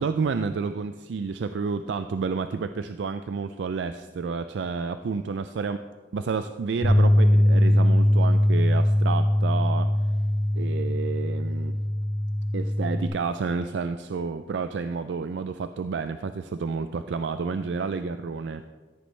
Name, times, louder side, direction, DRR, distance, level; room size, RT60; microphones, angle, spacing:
voice 1, 0.0-5.8 6.1-9.9 10.5-11.8 12.5-18.6, right 5 dB, 70° right, 10 dB, 0.4 m, -30 dB
sound 1, 6.8-13.1, left 1 dB, 65° left, 2.7 m, -21 dB
14.0 x 10.0 x 3.2 m, 1.4 s
head